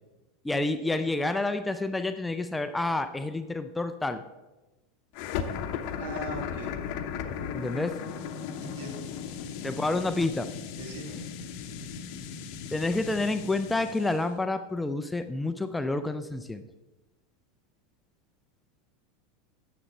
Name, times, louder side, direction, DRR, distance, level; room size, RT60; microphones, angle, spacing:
voice 1, 0.4-4.2 7.5-8.0 9.6-10.5 12.7-16.6, left 2 dB, 10° left, 9 dB, 0.5 m, -29 dB
sound 1, 5.1-14.3, left 7 dB, 50° left, 0.8 m, -36 dB
voice 2, 6.0-6.7 8.6-9.0 10.8-11.2, right 1 dB, 65° right, 0 dB, 2.3 m, -39 dB
9.9 x 6.9 x 4.4 m, 1.1 s
figure-of-eight pair, 85°, 0 cm